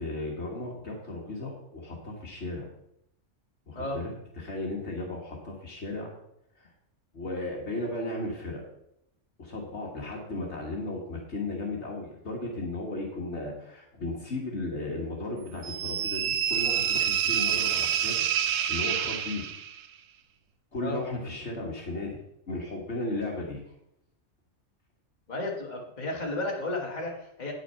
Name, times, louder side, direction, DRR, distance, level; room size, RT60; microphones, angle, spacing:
voice 1, 0.0-2.7 3.7-6.1 6.6-6.7 7.1-8.6 9.4-18.3 18.7-19.4 20.7-22.2 22.5-23.6, left 2 dB, 60° left, 0 dB, 1.8 m, -35 dB
sound 1, 15.6-19.8, right 9 dB, 80° right, 1.0 m, -27 dB
voice 2, 25.3-27.5, left 2 dB, 35° left, -1 dB, 1.9 m, -33 dB
9.1 x 6.3 x 5.6 m, 0.79 s
omnidirectional pair, 1.3 m